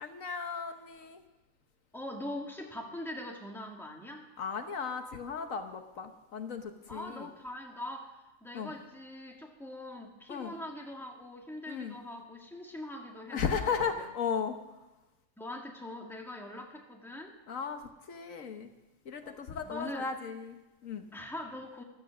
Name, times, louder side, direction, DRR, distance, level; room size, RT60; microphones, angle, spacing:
voice 1, 0.0-1.2 4.4-7.3 8.5-8.7 10.3-10.5 11.7-11.9 13.3-14.6 17.5-17.8 18.1-18.7 19.1-21.1, left 6 dB, 70° left, 7 dB, 1.4 m, -35 dB
voice 2, 1.9-4.3 6.9-14.1 15.4-17.4 19.2-20.1 21.1-21.8, left 1 dB, ahead, 0 dB, 1.9 m, -42 dB
15.0 x 13.5 x 6.3 m, 1.0 s
omnidirectional pair, 1.5 m